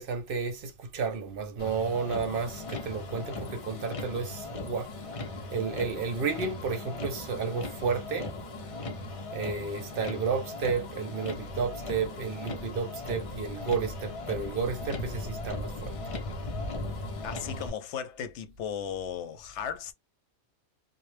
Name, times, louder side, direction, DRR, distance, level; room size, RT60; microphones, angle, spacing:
voice 1, 0.0-4.9 5.5-8.3 9.3-16.0, right 5 dB, 60° right, 0.7 m, -32 dB
Motor vehicle (road), 1.6-17.7, left 2 dB, 45° left, 0.4 m, -38 dB
voice 2, 17.2-19.9, left 8 dB, 85° left, 0.9 m, -36 dB
2.0 x 2.0 x 3.1 m
omnidirectional pair, 1.2 m